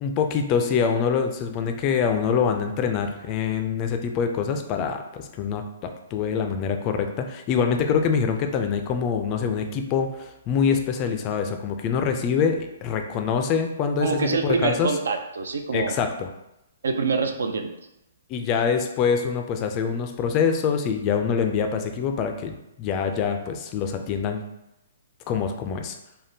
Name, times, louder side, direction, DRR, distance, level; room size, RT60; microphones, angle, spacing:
voice 1, 0.0-14.9 15.7-16.3 18.3-24.4 25.3-26.0, left 6 dB, 30° left, 6 dB, 0.3 m, -25 dB
voice 2, 14.0-16.0 16.8-17.7, right 4 dB, 80° right, 6 dB, 0.4 m, -25 dB
3.5 x 2.1 x 2.7 m, 0.89 s
hypercardioid pair, 150°, 0 cm